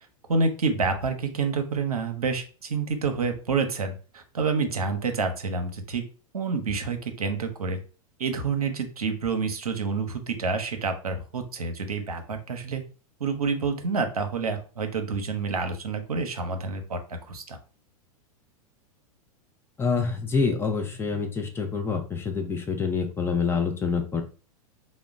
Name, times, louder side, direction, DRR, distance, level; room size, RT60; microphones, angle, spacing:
voice 1, 0.3-6.0 6.3-7.8 8.2-12.8 13.2-17.6, right 4 dB, 80° right, 6 dB, 0.6 m, -28 dB
voice 2, 19.8-24.2, left 5 dB, 15° left, 3 dB, 0.5 m, -26 dB
2.9 x 2.1 x 3.5 m, 0.36 s
figure-of-eight pair, 95°, 19 cm